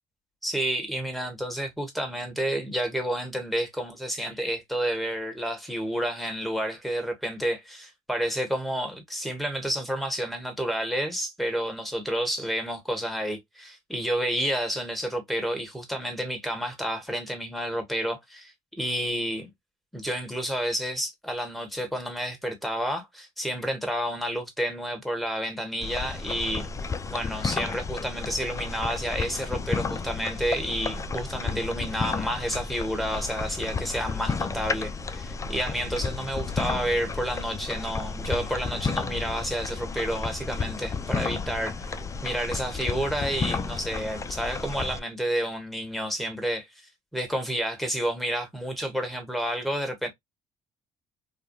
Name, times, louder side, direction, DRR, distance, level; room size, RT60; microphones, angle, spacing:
voice 1, 0.4-19.5 19.9-26.7 27.1-46.7 47.1-50.1, equal, ahead, 1.5 m, -30 dB
sound 1, 25.8-45.0, left 4 dB, 25° left, 0.4 m, -32 dB
3.2 x 2.3 x 2.6 m
supercardioid pair, 75°, 12 cm